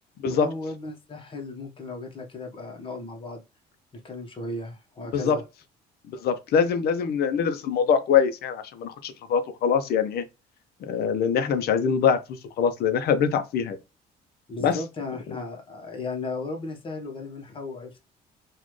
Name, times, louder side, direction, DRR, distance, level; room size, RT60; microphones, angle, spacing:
voice 1, 0.3-3.4 4.0-5.4 14.5-18.0, left 3 dB, 30° left, 1.2 m, -35 dB
voice 2, 6.2-10.2 10.9-13.8 14.6-14.8, left 7 dB, 70° left, 0.7 m, -23 dB
4.1 x 2.5 x 3.1 m
cardioid pair, 110°, 17 cm